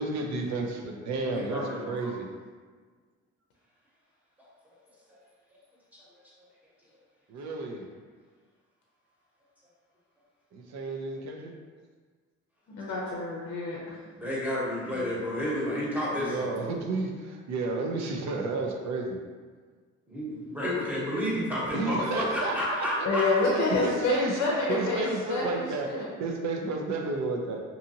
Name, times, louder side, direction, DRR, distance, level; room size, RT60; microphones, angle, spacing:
voice 1, 0.0-2.3 7.3-7.9 10.5-11.5 14.8-15.2 16.1-19.2 21.7-23.1 23.5-27.6, right 3 dB, 65° right, 1 dB, 0.6 m, -32 dB
voice 2, 1.3-2.1 14.1-16.7 20.1-23.3, left 1 dB, 5° right, -7 dB, 1.0 m, -31 dB
voice 3, 12.7-13.8 23.0-26.1, left 3 dB, 60° left, -3 dB, 0.6 m, -28 dB
2.7 x 2.5 x 2.7 m, 1.5 s
cardioid pair, 90°, 30 cm